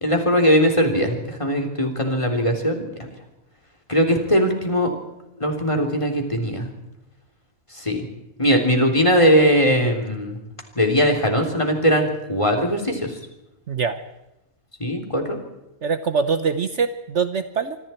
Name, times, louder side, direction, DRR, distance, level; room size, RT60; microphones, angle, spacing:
voice 1, 0.0-2.8 3.9-4.9 5.4-6.7 7.9-8.0 8.4-10.4 10.8-13.1 14.8-15.4, equal, 20° left, 2 dB, 3.6 m, -20 dB
voice 2, 15.8-17.8, right 5 dB, 55° right, 10 dB, 1.2 m, -23 dB
26.5 x 24.5 x 4.5 m, 0.92 s
omnidirectional pair, 1.5 m